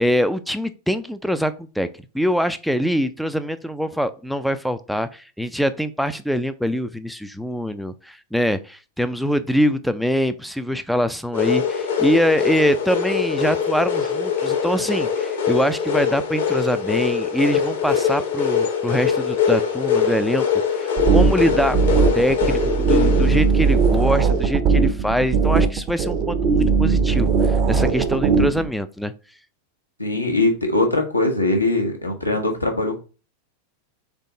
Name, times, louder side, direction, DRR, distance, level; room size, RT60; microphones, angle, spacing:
voice 1, 0.0-1.9 2.1-20.5 20.7-29.1, equal, ahead, 10 dB, 0.3 m, -23 dB
sound 1, 11.3-24.5, left 7 dB, 60° left, 1.1 m, -23 dB
sound 2, 21.0-28.7, right 5 dB, 35° right, 0.6 m, -19 dB
voice 2, 30.0-33.0, left 2 dB, 85° left, 3 dB, 0.9 m, -21 dB
3.6 x 3.6 x 3.8 m, 0.34 s
figure-of-eight pair, 90°, 0 cm